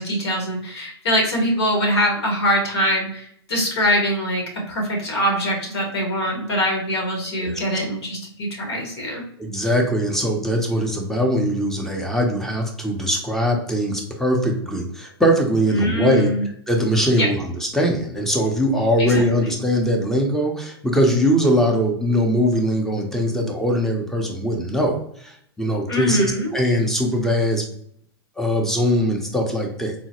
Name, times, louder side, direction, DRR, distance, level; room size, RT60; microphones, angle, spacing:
voice 1, 0.0-9.2 15.7-16.4 17.1-17.3 19.0-19.5 25.9-26.5, equal, 75° left, 0 dB, 1.4 m, -23 dB
voice 2, 9.4-16.3 16.7-27.7 28.4-29.9, equal, 5° left, 1 dB, 0.6 m, -21 dB
3.9 x 2.0 x 2.9 m, 0.68 s
hypercardioid pair, 120°, 14 cm